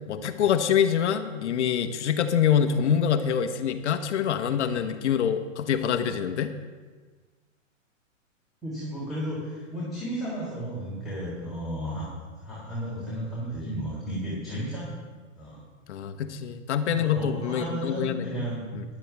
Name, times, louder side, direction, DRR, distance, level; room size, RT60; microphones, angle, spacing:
voice 1, 0.1-6.5 15.9-18.4 18.7-18.8, left 8 dB, 60° left, 9 dB, 1.1 m, -25 dB
voice 2, 8.6-12.1 12.4-14.9 15.4-15.6 16.9-18.6, right 1 dB, ahead, -9 dB, 3.7 m, -33 dB
15.5 x 11.0 x 3.5 m, 1.4 s
hypercardioid pair, 120°, 39 cm